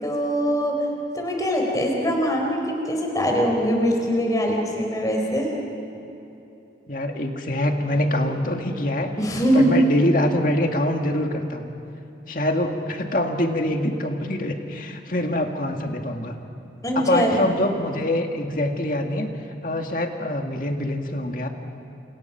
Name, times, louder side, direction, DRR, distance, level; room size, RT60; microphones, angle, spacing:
voice 1, 0.0-0.9 1.1-5.5 9.2-9.7 16.8-17.5, equal, 20° left, 1 dB, 4.1 m, -22 dB
voice 2, 6.9-9.1 9.5-11.7 12.3-16.3 17.0-19.3 19.6-21.5, left 1 dB, 50° left, 3 dB, 2.1 m, -24 dB
29.0 x 28.0 x 5.9 m, 2.9 s
head